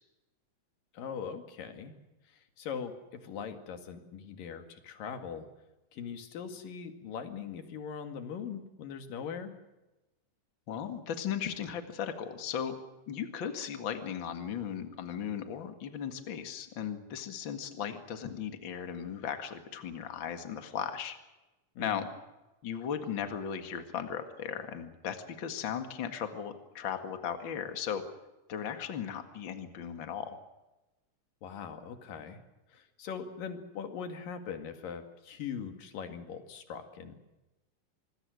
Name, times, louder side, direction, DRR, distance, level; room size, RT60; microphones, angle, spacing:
voice 1, 0.9-1.9 2.3-5.5 5.9-9.5 21.8-22.1 31.4-32.4 32.7-37.2, left 7 dB, 85° left, 7 dB, 3.8 m, -41 dB
voice 2, 10.7-12.8 13.1-21.2 21.8-22.1 22.6-28.1 28.5-30.4, left 8 dB, 40° left, 7 dB, 2.3 m, -37 dB
26.0 x 22.0 x 6.4 m, 1.0 s
omnidirectional pair, 3.8 m